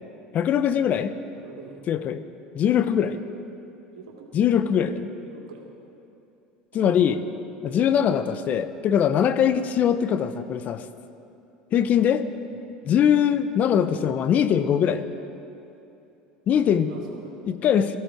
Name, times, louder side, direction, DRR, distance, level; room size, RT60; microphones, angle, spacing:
voice 1, 0.3-1.1 1.9-2.2 2.5-3.2 4.3-5.1 6.7-7.2 7.6-10.8 11.7-12.2 12.9-15.0 16.5-16.9 17.5-18.0, left 8 dB, 45° left, 12 dB, 0.8 m, -22 dB
voice 2, 1.3-1.8 3.9-4.3 5.2-5.7 6.7-7.1 16.7-17.4, right 5 dB, 85° right, -1 dB, 2.4 m, -45 dB
17.0 x 14.5 x 4.6 m, 2.8 s
hypercardioid pair, 85°, 4 cm